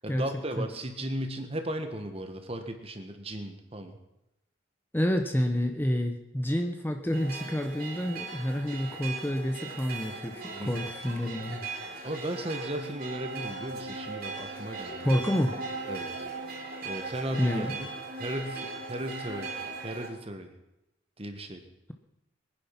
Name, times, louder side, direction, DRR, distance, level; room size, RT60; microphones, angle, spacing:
voice 1, 0.0-4.0 10.5-10.8 12.0-15.1 15.9-16.1 16.8-17.9 18.2-19.5 19.8-20.5 21.2-21.6, right 1 dB, 30° right, 7 dB, 1.6 m, -36 dB
voice 2, 4.9-11.6 15.0-15.5 17.4-17.7, equal, 10° left, 5 dB, 0.9 m, -28 dB
sound 1, 7.1-20.1, right 3 dB, 50° right, 3.3 m, -38 dB
22.5 x 10.0 x 5.9 m, 0.92 s
head